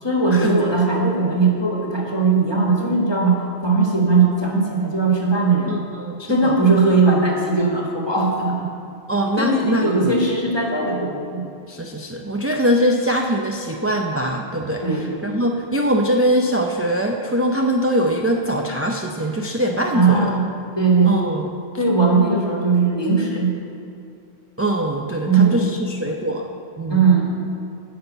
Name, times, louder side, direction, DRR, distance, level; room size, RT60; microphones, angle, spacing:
voice 1, 0.0-5.7 6.3-8.7 9.4-11.4 14.8-15.1 19.9-20.4 20.8-21.2 21.8-23.5 25.2-25.7 26.9-27.4, right 4 dB, 25° left, -2 dB, 1.6 m, -19 dB
voice 2, 5.7-6.5 9.1-10.1 11.7-14.8 15.2-20.3 21.1-21.4 24.6-26.5 26.8-27.0, right 1 dB, 25° right, 1 dB, 0.3 m, -22 dB
10.0 x 5.6 x 8.1 m, 2.6 s
omnidirectional pair, 1.1 m